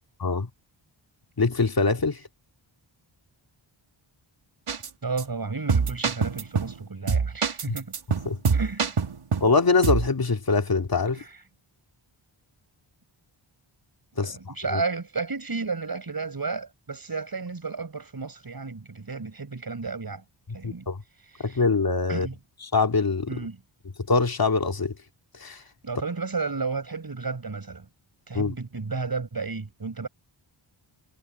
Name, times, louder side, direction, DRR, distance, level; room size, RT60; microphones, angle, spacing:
voice 1, 1.4-2.2 7.7-7.8 8.3-8.4 9.4-11.2 14.2-14.8 20.6-21.0 21.4-22.3 22.6-23.3 24.1-24.9 25.4-25.6 28.3-28.5, left 4 dB, 45° left, 2.5 m, -23 dB
sound 1, 4.7-4.9 5.2-5.3 5.7-6.8 7.1-9.5 9.8-10.1, right 5 dB, 80° right, 3.3 m, -25 dB
voice 2, 5.0-7.9 8.5-9.0 11.1-11.4 14.2-20.2 20.5-20.9 21.2-21.6 22.1-22.4 23.3-23.6 25.8-27.9 28.3-30.1, right 4 dB, 45° right, 5.7 m, -32 dB
wide cardioid pair, 110°, 50 cm